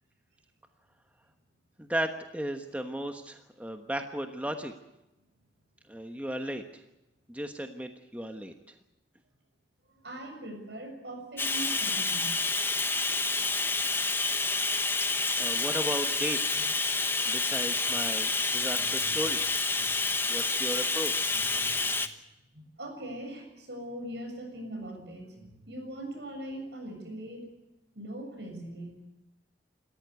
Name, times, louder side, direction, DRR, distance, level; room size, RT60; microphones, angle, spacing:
voice 1, 1.8-4.7 5.9-6.8 7.3-8.5 15.4-16.7 17.2-19.4 20.3-21.4, equal, 10° right, 5 dB, 1.2 m, -35 dB
voice 2, 9.9-12.3 16.5-16.6 18.7-19.2 19.8-20.2 21.3-22.0 22.5-27.5 27.9-29.1, right 1 dB, 65° right, 4 dB, 7.1 m, -41 dB
Bathtub (filling or washing), 11.4-22.1, left 3 dB, 10° left, 1.2 m, -28 dB
28.5 x 14.0 x 8.2 m, 0.95 s
head